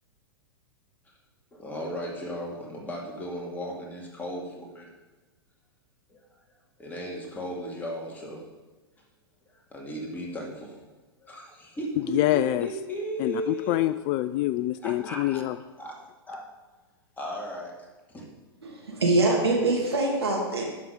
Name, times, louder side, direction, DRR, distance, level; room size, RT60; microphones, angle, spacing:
voice 1, 1.5-4.9 6.1-6.2 6.8-8.4 9.7-10.8 11.2-13.8 14.8-15.4 15.8-15.9 16.3-16.4 17.2-17.7 18.1-18.3, equal, 15° left, -2 dB, 2.3 m, -35 dB
voice 2, 12.1-12.7 13.2-15.6, left 15 dB, 35° left, 14 dB, 0.3 m, -26 dB
voice 3, 18.6-20.6, right 2 dB, 80° right, -1 dB, 2.7 m, -24 dB
11.0 x 6.2 x 5.2 m, 1.2 s
figure-of-eight pair, 100°, 13 cm